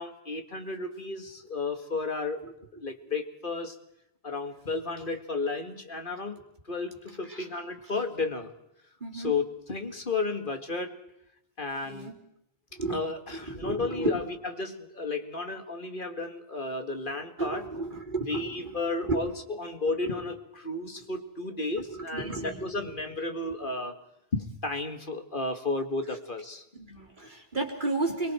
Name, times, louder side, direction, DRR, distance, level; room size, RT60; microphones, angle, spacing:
voice 1, 0.0-2.4 2.8-3.8 4.2-6.4 6.7-8.5 9.1-11.0 11.6-12.1 12.9-14.2 14.6-17.6 18.3-24.0 24.3-26.6, left 3 dB, 55° left, 6 dB, 2.1 m, -33 dB
voice 2, 9.0-9.3 11.8-12.1 12.7-13.0 13.5-14.2 17.4-19.2 20.0-20.1 21.9-22.7 23.4-23.5 26.8-28.3, right 3 dB, 50° right, 2 dB, 3.7 m, -33 dB
29.5 x 23.0 x 4.5 m, 0.79 s
omnidirectional pair, 1.0 m